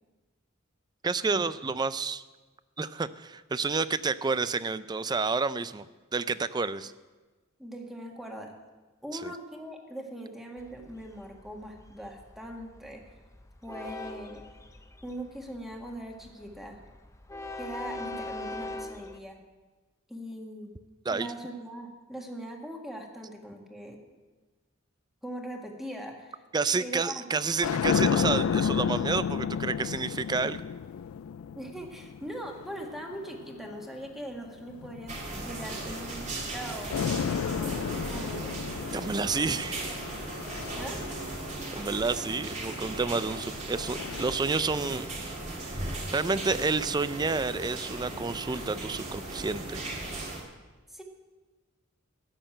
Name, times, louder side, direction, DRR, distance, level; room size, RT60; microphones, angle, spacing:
voice 1, 1.0-2.2 2.8-5.9 6.1-6.9 9.2-9.3 21.1-21.3 26.5-30.6 38.9-39.9 41.7-45.1 45.6-49.8, right 4 dB, 20° right, 15 dB, 0.4 m, -30 dB
voice 2, 7.6-8.5 9.0-13.0 13.6-14.5 15.0-16.8 17.6-19.4 20.1-20.7 21.1-24.0 25.2-26.4 26.8-27.2 31.5-37.7 38.1-38.6 39.8-40.0 40.7-41.0 50.9-51.0, equal, ahead, 1 dB, 1.6 m, -41 dB
Train, 10.6-19.2, left 2 dB, 15° left, 0.7 m, -43 dB
sound 1, 27.4-33.9 34.7-36.6 36.9-42.2 43.2-44.3, left 7 dB, 80° left, 0.3 m, -32 dB
sound 2, 35.1-50.4, right 2 dB, 35° right, 2.6 m, -37 dB
13.5 x 6.7 x 8.9 m, 1.3 s
head